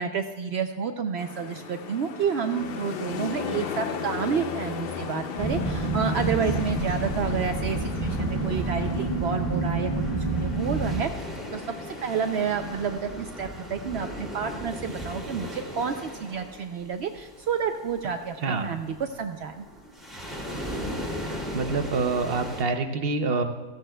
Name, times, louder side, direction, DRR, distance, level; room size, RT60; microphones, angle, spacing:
voice 1, 0.0-19.6, right 6 dB, 85° right, 6 dB, 0.5 m, -30 dB
sound 1, 1.2-13.2, left 6 dB, 80° left, 0.5 m, -36 dB
sound 2, 5.4-11.0, right 2 dB, 30° right, 1.5 m, -28 dB
sound 3, 6.1-22.6, equal, ahead, 2.4 m, -39 dB
voice 2, 18.4-18.7 21.2-23.4, right 4 dB, 50° right, 6 dB, 0.7 m, -27 dB
17.5 x 14.5 x 2.2 m, 1.2 s
omnidirectional pair, 1.7 m